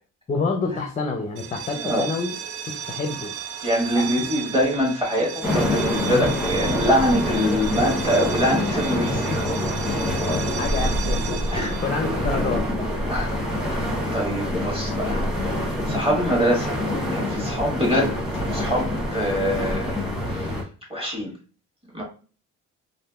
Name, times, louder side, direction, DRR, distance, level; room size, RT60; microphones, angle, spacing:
voice 1, 0.3-2.4 2.7-3.3 4.0-4.1 6.1-6.3 10.6-12.6, left 4 dB, 25° left, 4 dB, 0.5 m, -28 dB
sound 1, 1.3-13.0, right 9 dB, 85° right, 0.5 m, -35 dB
voice 2, 1.7-2.1 3.6-9.4 11.5-11.7 13.0-13.4 13.6-16.8 17.1-18.2 18.4-20.6 20.9-21.3 21.9-22.0, equal, 20° right, -2 dB, 1.5 m, -24 dB
sound 2, 5.4-20.6, left 1 dB, ahead, 1.1 m, -26 dB
3.2 x 2.4 x 2.3 m, 0.37 s
cardioid pair, 100°, 29 cm